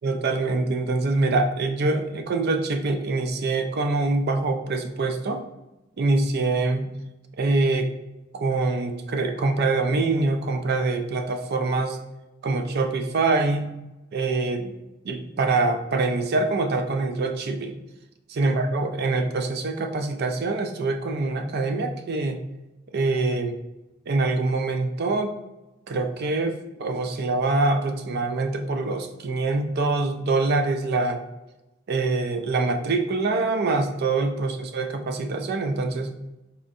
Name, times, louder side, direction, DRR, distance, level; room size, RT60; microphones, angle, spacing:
voice 1, 0.0-5.4 6.0-6.9 7.4-7.9 8.3-12.0 12.4-13.7 14.1-14.7 15.0-17.8 18.3-22.4 22.9-23.6 24.1-25.4 25.9-31.2 31.9-36.1, right 3 dB, 55° right, 6 dB, 0.4 m, -24 dB
4.2 x 2.6 x 2.5 m, 1.0 s
head